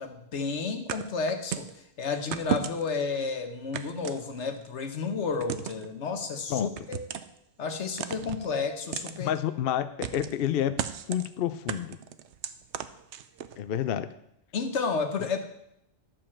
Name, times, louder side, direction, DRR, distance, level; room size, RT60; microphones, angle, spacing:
voice 1, 0.0-7.0 7.6-9.3 14.5-15.4, left 4 dB, 90° left, 7 dB, 1.4 m, -31 dB
sound 1, 0.9-1.8 2.3-3.0 3.7-4.7 5.4-5.9 6.8-7.4 8.0-8.5 8.9-9.2 10.0-10.4 10.8-11.3 11.7-13.6, right 9 dB, 90° right, 0.9 m, -34 dB
voice 2, 9.2-10.7 11.1-12.0 13.6-14.1, left 10 dB, 65° left, 12 dB, 0.7 m, -29 dB
11.5 x 5.1 x 7.2 m, 0.79 s
omnidirectional pair, 1.1 m